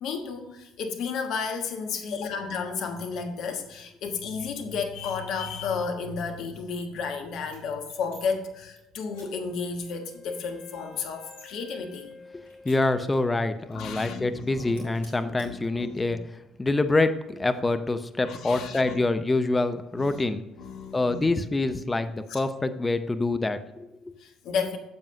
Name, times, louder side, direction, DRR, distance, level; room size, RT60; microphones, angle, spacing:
voice 1, 0.0-12.2 13.7-14.9 15.2-15.9 18.2-19.0 19.9-20.2 20.6-21.3 22.3-22.4 24.2-24.8, left 5 dB, 60° left, 5 dB, 1.2 m, -32 dB
sound 1, 7.5-8.2 8.5-8.8 9.1-9.3 9.7-9.8 10.1-11.5 11.9-13.3 13.7-13.8 14.1-14.4 14.7-15.5, left 1 dB, 80° left, 3.1 m, -52 dB
Wind instrument woodwind instrument, 9.1-14.0, left 5 dB, 45° left, 1.4 m, -50 dB
voice 2, 12.6-20.4 20.9-24.1, left 2 dB, 20° left, 10 dB, 0.7 m, -26 dB
9.4 x 7.3 x 2.8 m, 0.96 s
hypercardioid pair, 55°, 0 cm